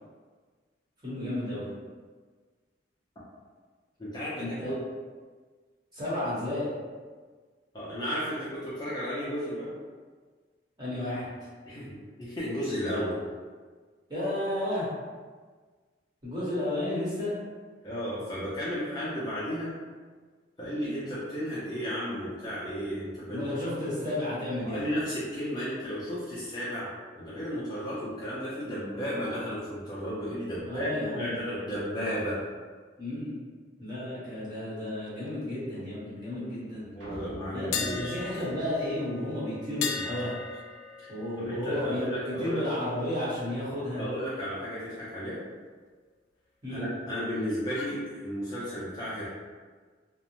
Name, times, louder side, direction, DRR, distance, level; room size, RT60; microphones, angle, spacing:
voice 1, 1.0-1.7 4.3-4.7 5.9-6.7 10.8-11.3 14.1-14.9 16.2-17.3 23.3-24.8 30.7-31.4 33.0-33.4 33.8-36.8 37.5-40.3 41.1-44.0 46.6-46.8, left 1 dB, 25° right, -10 dB, 1.0 m, -32 dB
voice 2, 4.0-4.8 7.7-9.7 11.6-13.2 17.8-19.7 20.6-23.4 24.6-26.9 27.2-32.4 36.9-38.5 41.0-41.1 41.4-42.6 44.0-45.4 46.7-49.3, equal, 20° left, -10 dB, 0.5 m, -33 dB
sound 1, 37.0-39.5, equal, 80° right, 0.6 m, -47 dB
sound 2, 37.7-43.6 43.9-44.2 47.7-48.0, left 5 dB, 85° left, 0.3 m, -38 dB
2.6 x 2.1 x 2.9 m, 1.5 s
head